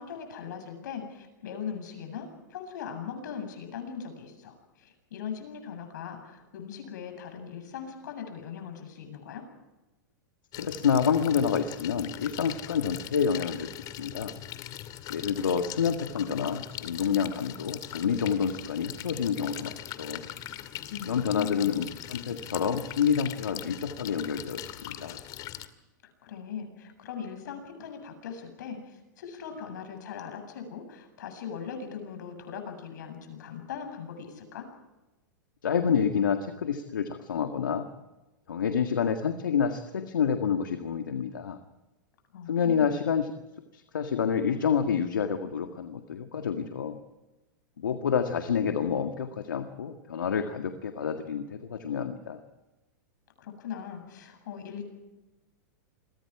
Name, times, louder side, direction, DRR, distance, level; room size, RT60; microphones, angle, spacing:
voice 1, 0.0-9.4 20.9-21.7 26.2-34.7 42.3-43.0 53.4-54.9, left 7 dB, 70° left, 6 dB, 7.6 m, -40 dB
sound 1, 10.5-25.7, left 13 dB, 40° left, 2.3 m, -41 dB
voice 2, 10.6-13.7 14.0-14.3 15.1-20.3 21.1-25.2 35.6-37.9 38.5-41.6 42.5-43.3 43.7-47.0 47.8-52.4, left 7 dB, 85° left, 6 dB, 1.8 m, -28 dB
29.5 x 23.5 x 4.9 m, 1.1 s
hypercardioid pair, 115°, 10 cm